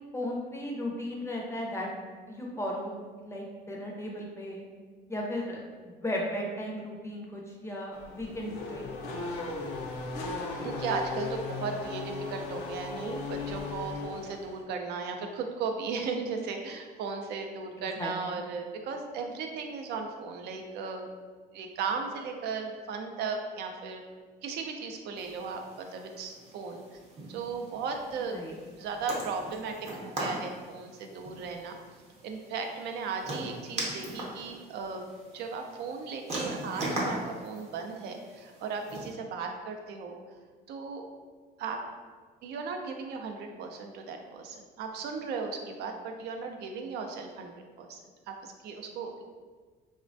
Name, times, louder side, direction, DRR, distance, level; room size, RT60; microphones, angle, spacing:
voice 1, 0.1-1.9 2.3-4.6 5.1-9.0 17.8-18.4 28.3-28.6, left 1 dB, 15° left, -1 dB, 0.4 m, -36 dB
Race car auto racing / Accelerating revving vroom, 7.9-14.6, left 3 dB, 80° left, 0.5 m, -37 dB
voice 2, 10.6-21.1 21.5-24.1 24.4-26.8 27.3-28.4 28.8-29.8 30.0-31.8 32.2-40.1 40.7-41.1 41.6-41.8 42.4-47.5 47.8-48.0 48.3-49.3, right 4 dB, 80° right, 4 dB, 0.4 m, -36 dB
sound 1, 25.2-39.1, right 1 dB, 40° right, 0.7 m, -40 dB
3.2 x 2.1 x 2.5 m, 1.5 s
cardioid pair, 110°, 17 cm